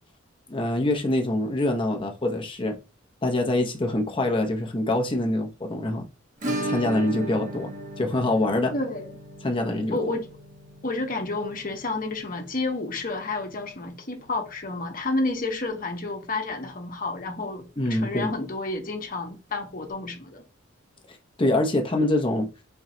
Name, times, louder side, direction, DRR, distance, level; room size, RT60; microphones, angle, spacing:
voice 1, 0.5-2.8 3.2-6.1 6.6-8.7 9.4-10.0 17.8-18.3 21.4-22.5, left 1 dB, 25° left, 0.8 m, -25 dB
Acoustic guitar / Strum, 6.4-15.0 15.3-15.4 15.7-15.8 16.1-16.2 18.3-18.4 19.5-19.6, right 1 dB, 40° right, 1.0 m, -37 dB
voice 2, 8.7-9.1 9.9-10.3 10.8-20.4, left 2 dB, 45° left, 1.1 m, -30 dB
4.4 x 3.1 x 3.8 m
head